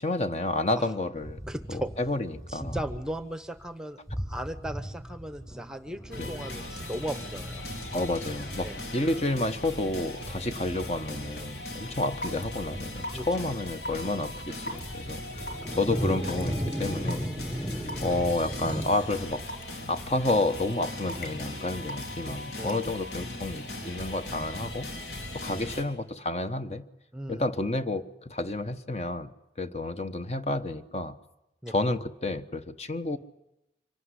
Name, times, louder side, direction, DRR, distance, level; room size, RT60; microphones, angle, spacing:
voice 1, 0.0-1.4 1.7-2.8 6.2-6.3 7.9-17.3 17.6-19.4 19.9-24.9 25.3-26.8 27.3-29.3 29.6-31.2 31.7-33.2, left 2 dB, 35° left, 9 dB, 1.0 m, -30 dB
sound 1, 1.2-3.2 3.6-3.7 4.1-18.8, equal, 20° left, 6.7 m, -38 dB
voice 2, 1.5-1.9 2.5-7.6 8.6-8.8 13.1-13.3 22.6-22.9 27.1-27.5 31.6-31.7, right 1 dB, 5° right, 11 dB, 0.9 m, -37 dB
sound 2, 6.1-25.8, left 1 dB, 80° left, 3.6 m, -39 dB
Raindrop / Water tap faucet / Drip, 12.2-12.4 13.0-13.3 13.8-14.0 14.7-14.8 15.5-15.7 16.3-16.5 17.1-17.2 17.9-18.1 18.7-18.8 19.5-19.6 20.3-20.6 21.1-21.4 21.9-22.1 22.7-22.9, left 1 dB, 55° left, 2.8 m, -36 dB
25.5 x 17.5 x 9.7 m, 0.92 s
head